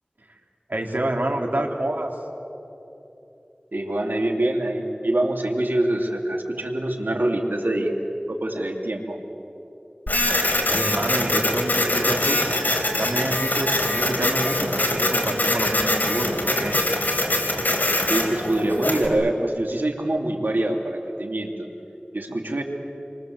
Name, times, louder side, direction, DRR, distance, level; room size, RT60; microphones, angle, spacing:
voice 1, 0.7-2.1 10.6-12.4 13.0-16.7 22.3-22.4, right 1 dB, 65° right, 0 dB, 3.7 m, -27 dB
voice 2, 3.7-7.9 8.3-9.2 18.1-21.5 22.1-22.6, right 1 dB, 85° right, 1 dB, 3.1 m, -25 dB
Printer, 10.1-19.1, left 1 dB, 65° left, 4.2 m, -23 dB
29.5 x 24.0 x 8.0 m, 3.0 s
wide cardioid pair, 40°, 3 cm